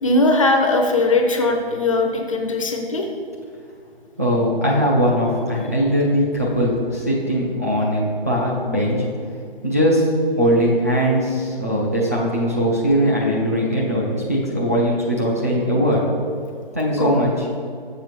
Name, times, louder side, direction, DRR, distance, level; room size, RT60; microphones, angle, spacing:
voice 1, 0.0-3.1 17.0-17.2, left 2 dB, 35° left, 3 dB, 0.7 m, -19 dB
voice 2, 4.2-9.0 9.6-10.1 10.4-16.0 16.7-17.5, equal, 15° right, -5 dB, 0.5 m, -20 dB
7.1 x 6.8 x 4.4 m, 2.3 s
figure-of-eight pair, 160°, 30 cm